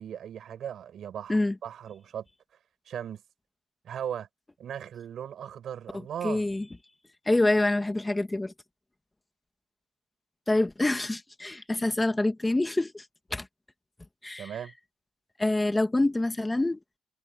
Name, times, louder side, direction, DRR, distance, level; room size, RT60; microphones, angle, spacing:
voice 1, 0.0-2.3 2.9-3.2 3.8-4.3 4.6-6.5 14.4-14.7, right 9 dB, 65° right, 6.6 m, -37 dB
voice 2, 6.2-6.6 7.3-8.5 10.5-13.0 13.3-13.5 14.2-14.5 15.4-16.8, left 2 dB, 15° left, 2.0 m, -26 dB
cardioid pair, 90°, 0 cm